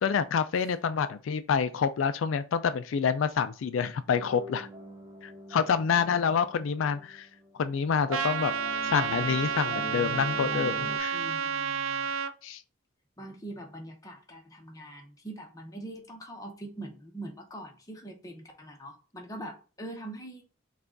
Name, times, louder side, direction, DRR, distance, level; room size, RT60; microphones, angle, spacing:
voice 1, 0.0-4.7 5.2-7.3 7.6-8.5 8.8-11.2 12.4-12.6, left 6 dB, 80° left, 0.4 m, -27 dB
sound 1, 4.1-11.0, right 2 dB, 25° right, 0.7 m, -42 dB
Trumpet, 8.1-12.3, right 6 dB, 85° right, 0.4 m, -30 dB
voice 2, 11.1-12.1 13.2-20.4, right 1 dB, 15° left, 0.9 m, -43 dB
5.7 x 2.4 x 3.8 m
head